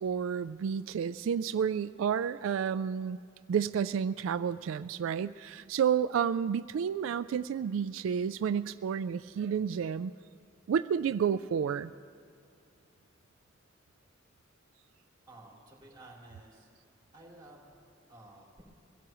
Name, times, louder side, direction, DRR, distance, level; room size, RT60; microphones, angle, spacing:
voice 1, 0.0-3.2 3.5-10.1 10.7-11.9, right 7 dB, 90° right, 12 dB, 0.3 m, -30 dB
voice 2, 15.3-16.7 17.1-17.6 18.1-18.6, right 2 dB, 25° right, -3 dB, 3.7 m, -53 dB
24.0 x 17.0 x 3.1 m, 2.4 s
head